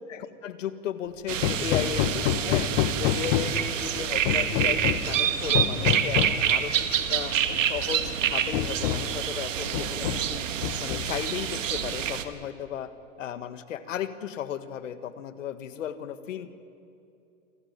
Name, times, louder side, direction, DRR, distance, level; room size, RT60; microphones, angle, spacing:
voice 1, 0.1-7.4 7.6-10.4 10.8-12.9 13.2-16.5, left 9 dB, 75° left, 12 dB, 1.7 m, -35 dB
sound 1, 1.3-12.2, right 9 dB, 75° right, 1.8 m, -27 dB
Hammer, 1.4-3.7 4.3-5.1 5.5-6.5 7.5-7.6 8.0-8.1 8.5-9.2 9.7-10.3 10.6-11.3, left 12 dB, 45° left, 1.2 m, -27 dB
28.0 x 14.0 x 9.1 m, 2.7 s
hypercardioid pair, 135°, 38 cm